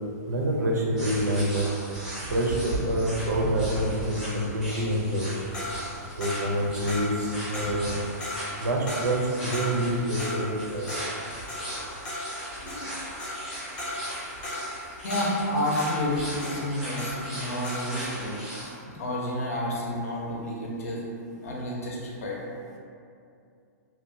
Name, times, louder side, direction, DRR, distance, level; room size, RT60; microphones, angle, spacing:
voice 1, 0.3-1.7 2.3-5.2 6.2-7.1 7.5-7.9 8.6-10.9, right 1 dB, 90° right, -1 dB, 0.5 m, -27 dB
sound 1, 1.0-18.7, right 1 dB, 5° right, 0.4 m, -37 dB
sound 2, 5.5-17.4 17.6-18.0, left 1 dB, 20° left, 0.7 m, -36 dB
voice 2, 15.0-18.4 18.9-21.0 21.4-22.4, left 1 dB, 60° left, -3 dB, 0.6 m, -30 dB
2.8 x 2.2 x 2.6 m, 2.5 s
hypercardioid pair, 180°, 9 cm